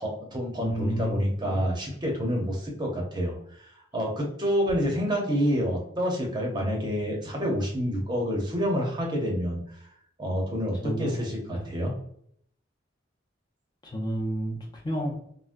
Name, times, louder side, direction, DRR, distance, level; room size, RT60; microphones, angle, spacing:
voice 1, 0.0-3.7 3.9-9.6 10.2-11.9, equal, 25° right, -1 dB, 0.7 m, -28 dB
voice 2, 0.6-1.1 1.5-1.6 10.8-11.6 13.8-14.6 14.8-15.1, right 1 dB, 20° left, -2 dB, 0.5 m, -31 dB
3.5 x 2.1 x 2.5 m, 0.67 s
head